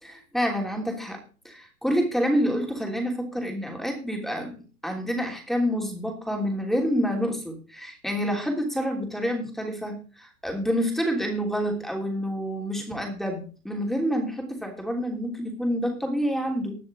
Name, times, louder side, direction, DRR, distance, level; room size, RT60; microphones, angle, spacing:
voice 1, 0.0-1.2 1.4-4.6 4.8-16.8, equal, ahead, 2 dB, 3.1 m, -28 dB
20.5 x 6.9 x 3.8 m, 0.37 s
hypercardioid pair, 120°, 44 cm